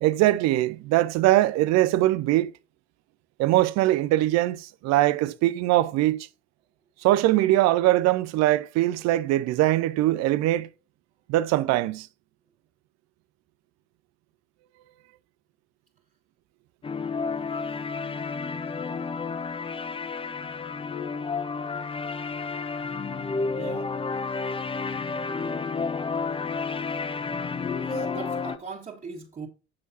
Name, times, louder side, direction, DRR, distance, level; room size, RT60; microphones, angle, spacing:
voice 1, 0.0-2.5 3.4-6.3 7.0-10.7 11.3-12.1, right 15 dB, 55° right, 0.6 m, -22 dB
sound 1, 16.8-28.6, left 4 dB, 15° left, 0.6 m, -31 dB
voice 2, 17.5-17.9 23.6-24.0 26.9-27.0 27.8-29.5, right 5 dB, 25° right, 1.9 m, -40 dB
8.6 x 6.3 x 2.8 m
hypercardioid pair, 65°, 32 cm